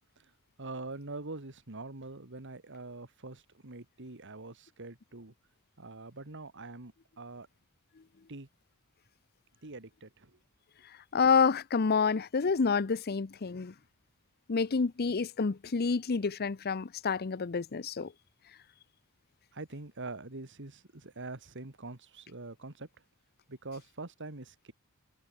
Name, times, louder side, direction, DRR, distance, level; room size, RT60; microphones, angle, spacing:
voice 1, 0.6-5.3 5.8-7.5 8.3-8.5 9.6-10.4 19.5-22.9 23.5-24.7, right 3 dB, 60° right, 2.1 m, -44 dB
voice 2, 11.1-13.7 14.5-18.1, left 5 dB, 45° left, 0.6 m, -28 dB
head